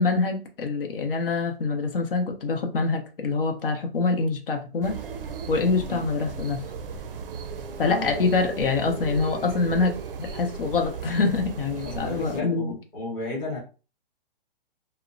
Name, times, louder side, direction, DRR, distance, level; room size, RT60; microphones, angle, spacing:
voice 1, 0.0-5.0 5.5-6.6 7.8-12.7, left 4 dB, 65° left, 0.8 m, -25 dB
sound 1, 4.8-12.4, right 5 dB, 70° right, 0.5 m, -36 dB
voice 2, 7.8-8.3 11.8-13.6, left 2 dB, 15° left, 0.7 m, -33 dB
2.9 x 2.0 x 2.5 m
hypercardioid pair, 165°, 29 cm